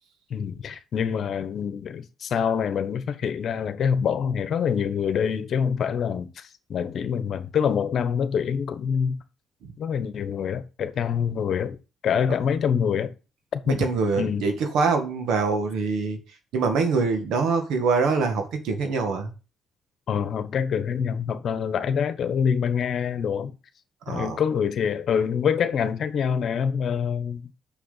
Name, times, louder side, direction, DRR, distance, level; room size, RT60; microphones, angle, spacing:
voice 1, 0.3-9.2 9.8-11.8 12.0-13.1 13.5-13.9 14.2-14.5 20.1-23.5 24.1-27.5, left 7 dB, 60° left, 1.2 m, -25 dB
voice 2, 13.7-16.2 16.5-19.3 24.1-24.4, right 4 dB, 85° right, 1.9 m, -24 dB
6.7 x 6.3 x 5.8 m
cardioid pair, 90°, 0 cm